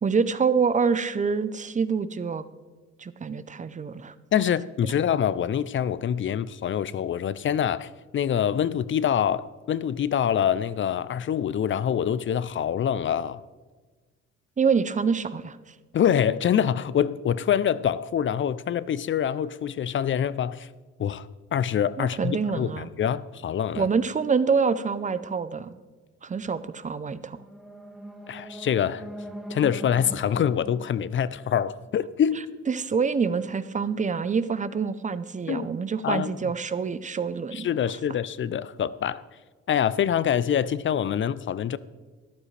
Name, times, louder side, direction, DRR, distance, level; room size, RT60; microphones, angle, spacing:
voice 1, 0.0-2.4 3.0-4.1 14.6-15.7 22.0-22.9 23.7-25.8 26.2-27.4 32.7-37.7, right 5 dB, 25° right, 0.6 m, -26 dB
voice 2, 4.3-13.4 15.9-20.7 21.0-23.9 28.3-29.0 29.5-32.4 35.5-35.7 36.0-36.3 37.5-39.2 39.7-41.8, left 9 dB, 40° left, 0.4 m, -25 dB
sound 1, 27.1-32.2, equal, ahead, 1.6 m, -42 dB
13.5 x 11.5 x 3.3 m
cardioid pair, 90°, 30 cm